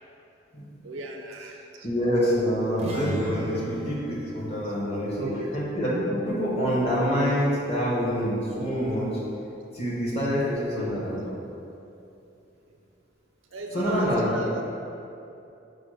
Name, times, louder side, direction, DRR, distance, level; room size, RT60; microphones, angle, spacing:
voice 1, 0.8-1.9 3.6-3.7 5.0-5.6 13.5-14.6, right 3 dB, 85° right, 2 dB, 0.4 m, -36 dB
voice 2, 1.8-5.3 5.5-9.1 9.7-11.2 13.7-14.3, equal, 30° left, -7 dB, 0.9 m, -26 dB
sound 1, 2.7-6.4, right 1 dB, 30° right, 0.4 m, -36 dB
5.0 x 2.0 x 4.6 m, 2.7 s
head